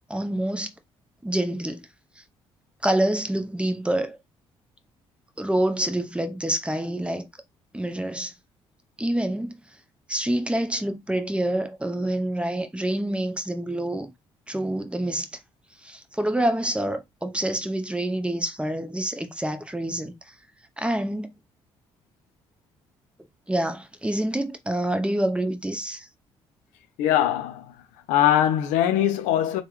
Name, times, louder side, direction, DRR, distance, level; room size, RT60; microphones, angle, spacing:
voice 1, 0.1-0.7 1.2-1.8 2.8-4.2 5.4-7.3 7.7-8.3 9.0-9.6 10.1-14.1 14.5-15.3 15.8-20.3 20.8-21.3 23.5-26.1, right 1 dB, 10° right, 0.7 m, -27 dB
voice 2, 27.0-27.7 28.1-29.6, left 11 dB, 80° left, 0.5 m, -21 dB
3.5 x 2.2 x 3.0 m
hypercardioid pair, 50°, 13 cm